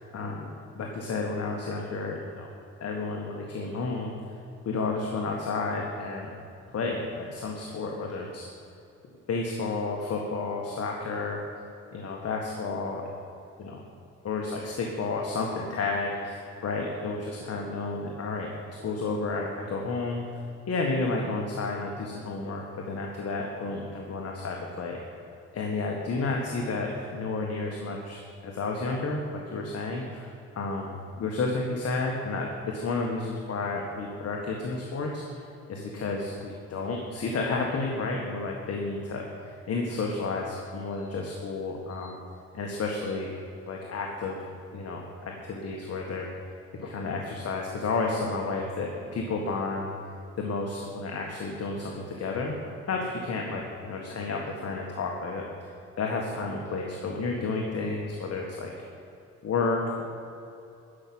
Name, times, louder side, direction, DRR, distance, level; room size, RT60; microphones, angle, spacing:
voice 1, 0.1-2.5 2.8-4.1 4.6-6.3 6.7-8.5 9.3-11.4 11.9-13.0 13.6-13.8 14.2-20.2 20.7-25.0 25.5-30.9 31.2-35.2 35.7-42.2 42.5-43.3 43.7-44.4 44.7-46.3 46.8-49.9 50.4-55.7 56.0-58.7 59.4-60.0, left 3 dB, 55° left, 0 dB, 1.7 m, -31 dB
13.5 x 6.0 x 9.6 m, 2.7 s
cardioid pair, 90°, 30 cm